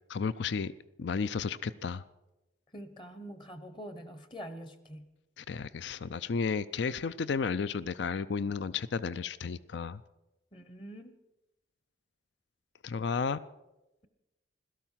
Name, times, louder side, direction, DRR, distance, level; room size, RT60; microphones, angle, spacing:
voice 1, 0.1-0.7 1.0-2.0 5.4-10.0 12.8-13.4, left 5 dB, 65° left, 17 dB, 0.4 m, -33 dB
voice 2, 2.7-5.1 10.5-11.1, equal, 25° left, 11 dB, 0.9 m, -45 dB
17.0 x 13.5 x 5.8 m, 0.98 s
head